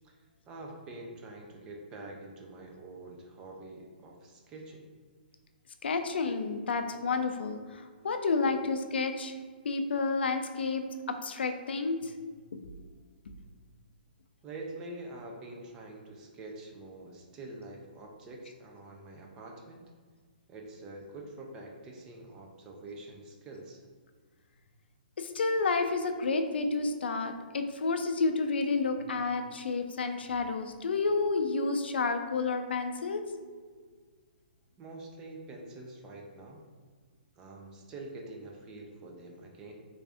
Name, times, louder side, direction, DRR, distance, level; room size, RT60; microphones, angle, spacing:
voice 1, 0.0-4.9 14.4-19.9 20.5-23.8 34.8-36.6 37.4-39.7, right 2 dB, 10° right, 0 dB, 0.3 m, -46 dB
voice 2, 5.8-9.3 9.6-12.1 25.2-33.2, left 4 dB, 85° left, 7 dB, 0.4 m, -30 dB
3.5 x 2.5 x 3.4 m, 1.5 s
hypercardioid pair, 170°, 6 cm